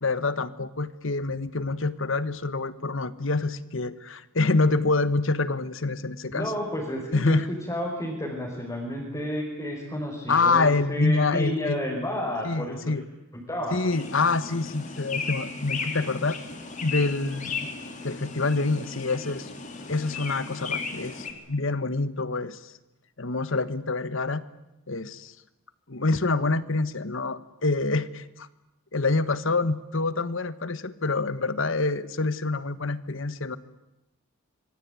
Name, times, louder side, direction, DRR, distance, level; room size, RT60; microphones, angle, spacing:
voice 1, 0.0-6.5 7.1-7.5 10.3-11.8 12.4-13.0 13.7-16.4 16.8-17.7 18.0-19.5 19.9-22.7 23.2-24.4 24.9-25.3 25.9-28.5 28.9-33.6, left 3 dB, 65° left, 15 dB, 1.3 m, -26 dB
voice 2, 6.3-7.4 7.7-12.9 13.3-13.8, equal, 15° left, -3 dB, 5.5 m, -31 dB
sound 1, 13.9-21.3, left 4 dB, 35° left, 3.5 m, -35 dB
26.5 x 23.5 x 9.6 m, 0.91 s
head